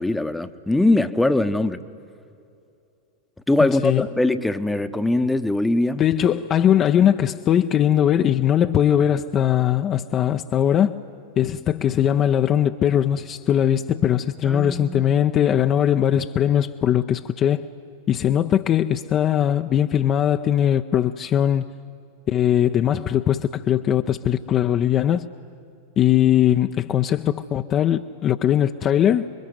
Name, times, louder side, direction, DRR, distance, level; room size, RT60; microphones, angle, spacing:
voice 1, 0.0-1.8 3.5-6.0 14.4-15.1, left 2 dB, 5° left, 0.9 m, -21 dB
voice 2, 3.6-4.1 5.9-11.0 11.4-17.7 18.1-21.6 22.3-25.3 26.0-29.3, left 10 dB, 30° left, 0.6 m, -20 dB
27.0 x 23.0 x 9.4 m
figure-of-eight pair, 90°, 0 cm